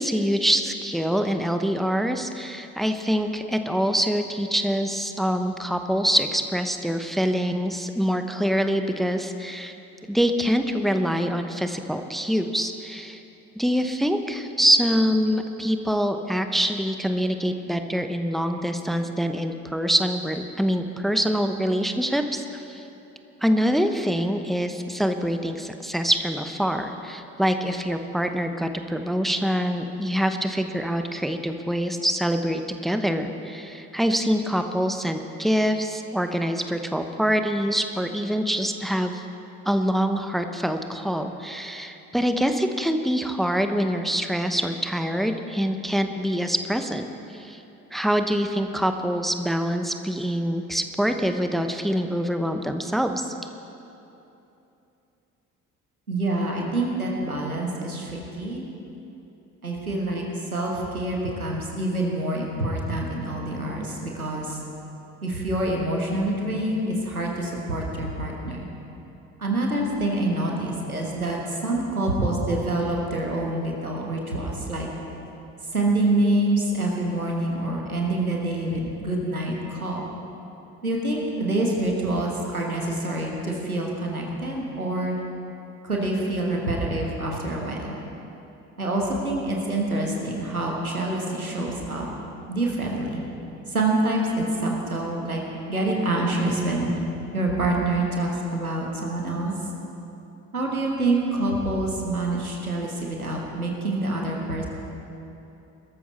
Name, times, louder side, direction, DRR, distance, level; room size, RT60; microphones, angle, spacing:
voice 1, 0.0-9.7 10.1-13.2 13.6-22.8 23.4-39.2 39.6-47.6 47.9-53.3, equal, ahead, 7 dB, 1.0 m, -25 dB
voice 2, 56.1-58.6 59.6-60.2 60.5-64.6 65.2-68.7 69.4-74.9 75.7-80.0 80.8-85.2 85.8-87.9 88.8-92.1 92.5-93.2 93.7-95.4 95.7-96.9 97.3-99.5 100.5-104.7, right 2 dB, 90° right, -1 dB, 1.5 m, -26 dB
21.5 x 13.5 x 4.3 m, 2.9 s
figure-of-eight pair, 45°, 42 cm